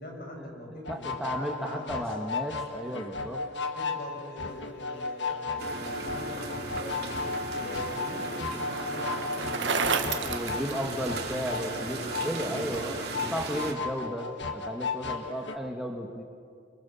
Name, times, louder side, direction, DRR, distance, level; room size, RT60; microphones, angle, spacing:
voice 1, 0.0-2.1 3.7-7.0 7.5-10.8 12.0-12.6, equal, 55° left, 1 dB, 6.1 m, -43 dB
sound 1, 0.9-15.6, left 4 dB, 80° left, 1.8 m, -35 dB
voice 2, 0.9-3.4 10.2-13.0 13.3-16.2, equal, ahead, 1 dB, 1.6 m, -34 dB
sound 2, 5.6-13.7, right 3 dB, 60° right, 2.6 m, -37 dB
Bicycle, 7.0-11.5, right 5 dB, 90° right, 1.5 m, -33 dB
26.0 x 24.0 x 7.2 m, 2.2 s
head